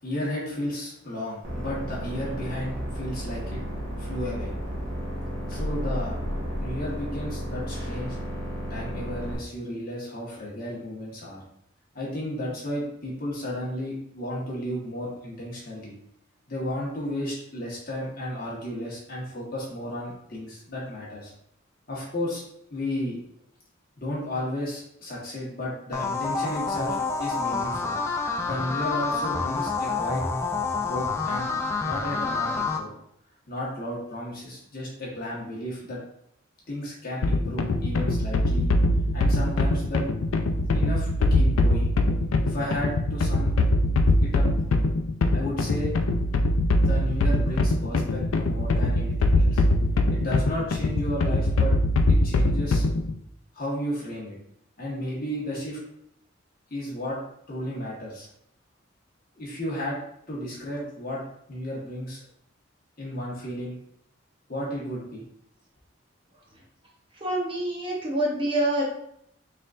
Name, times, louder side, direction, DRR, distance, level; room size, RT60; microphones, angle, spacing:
voice 1, 0.0-3.6 4.0-4.5 5.5-6.2 6.6-8.2 8.7-11.4 11.9-15.9 16.5-21.3 21.9-22.4 22.7-23.2 24.0-27.9 28.4-30.2 30.7-31.5 31.8-32.9 33.5-36.0 36.7-38.7 39.1-40.0 40.7-41.9 42.4-43.5 44.2-44.5 45.3-45.9 46.8-49.6 50.1-51.7 52.1-52.8 53.5-54.3 54.8-55.8 56.7-57.2 57.5-58.3 59.3-60.0 60.3-61.2 61.5-62.2 63.0-63.8 64.5-65.2, left 1 dB, 45° left, -5 dB, 1.4 m, -33 dB
sound 1, 1.4-9.4, equal, 70° right, 1.5 m, -32 dB
sound 2, 25.9-32.8, left 4 dB, 15° left, 0.3 m, -28 dB
sound 3, 37.2-53.1, left 2 dB, 85° left, 0.4 m, -23 dB
voice 2, 67.1-68.8, right 1 dB, 25° right, -3 dB, 0.9 m, -26 dB
4.0 x 3.8 x 2.6 m, 0.72 s
head